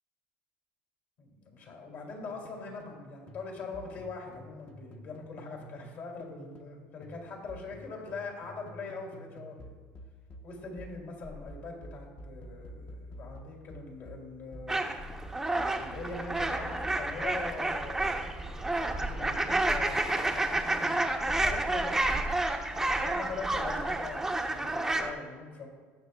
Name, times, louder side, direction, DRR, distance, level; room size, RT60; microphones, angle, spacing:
voice 1, 1.2-9.8 10.4-14.8 15.7-22.2 22.8-25.7, left 4 dB, 55° left, 0 dB, 2.5 m, -42 dB
sound 1, 2.1-3.0 3.3-6.8 7.0-17.1, equal, 30° left, 0.9 m, -48 dB
sound 2, 14.7-25.1, right 2 dB, 10° right, 0.7 m, -30 dB
18.0 x 6.3 x 2.3 m, 1.5 s
cardioid pair, 120°, 5 cm